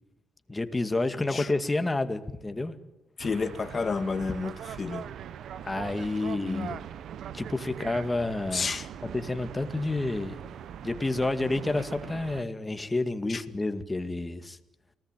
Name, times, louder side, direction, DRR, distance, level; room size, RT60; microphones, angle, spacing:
voice 1, 0.5-2.8 5.6-6.8 7.3-8.7 9.1-10.4 10.8-14.6, left 2 dB, 15° left, 2.2 m, -29 dB
voice 2, 3.2-5.1 6.4-6.8 8.5-8.9 13.3-13.4, left 4 dB, 35° left, 2.0 m, -31 dB
sound 1, 3.2-12.4, right 9 dB, 70° right, 1.0 m, -41 dB
29.0 x 19.5 x 9.2 m
cardioid pair, 90°, 0 cm